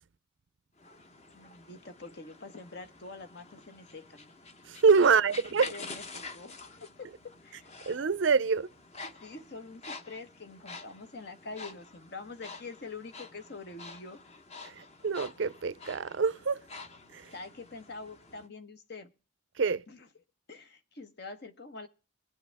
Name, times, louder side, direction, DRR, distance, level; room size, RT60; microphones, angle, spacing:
sound 1, 0.8-18.5, left 3 dB, 35° left, 1.0 m, -48 dB
voice 1, 1.3-4.3 5.1-5.3 5.7-7.1 7.4-7.7 9.0-14.2 17.3-19.1 19.9-20.0 20.5-21.9, left 3 dB, 55° left, 1.3 m, -45 dB
voice 2, 4.7-5.7 7.9-8.7 14.6-16.6 17.1-17.3 19.6-19.8, right 5 dB, 70° right, 0.5 m, -26 dB
22.5 x 8.0 x 3.5 m
head